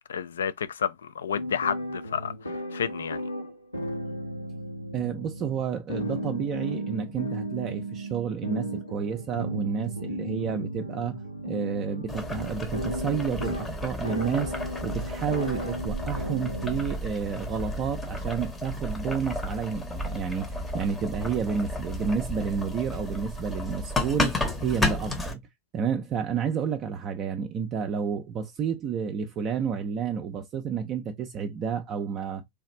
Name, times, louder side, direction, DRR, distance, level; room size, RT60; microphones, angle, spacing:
voice 1, 0.1-3.2, left 8 dB, 65° left, 0.3 m, -31 dB
sound 1, 1.3-16.8, equal, 85° left, 1.0 m, -35 dB
voice 2, 4.9-14.5 14.8-20.5 20.7-25.4 25.7-32.4, right 7 dB, 30° right, 0.4 m, -30 dB
Boiling, 12.1-25.3, left 2 dB, 10° left, 0.7 m, -32 dB
3.4 x 2.4 x 3.0 m
figure-of-eight pair, 90°, 0 cm